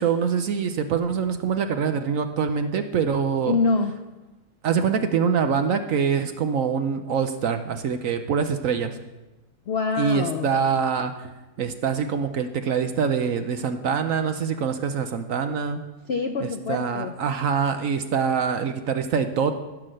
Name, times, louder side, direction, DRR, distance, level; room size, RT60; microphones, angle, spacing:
voice 1, 0.0-3.6 4.6-9.0 10.0-11.3 11.6-15.8 16.4-19.6, right 6 dB, 65° right, 8 dB, 0.9 m, -24 dB
voice 2, 3.5-4.0 9.7-10.5 16.1-17.1, left 4 dB, 65° left, 5 dB, 0.6 m, -25 dB
15.5 x 6.0 x 6.4 m, 1.1 s
omnidirectional pair, 1.8 m